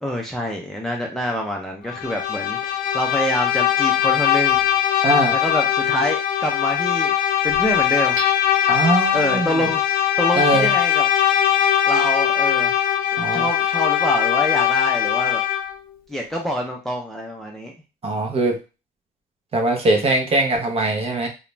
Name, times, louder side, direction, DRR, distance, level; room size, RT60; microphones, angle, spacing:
voice 1, 0.0-2.6 2.9-4.6 5.3-7.1 7.4-8.2 9.1-11.1 11.9-12.8 13.3-15.4 16.1-17.7, equal, ahead, 0 dB, 0.5 m, -26 dB
Bowed string instrument, 1.9-15.8, left 10 dB, 55° left, 0.5 m, -20 dB
voice 2, 5.0-5.4 8.7-9.5 10.3-10.7 13.2-13.5 18.0-18.6 19.5-21.3, right 2 dB, 35° right, 3 dB, 0.7 m, -21 dB
Hammer / Chink clink, 8.2-9.0, right 2 dB, 85° right, 0.6 m, -33 dB
2.4 x 2.1 x 3.1 m, 0.30 s
cardioid pair, 110°, 17 cm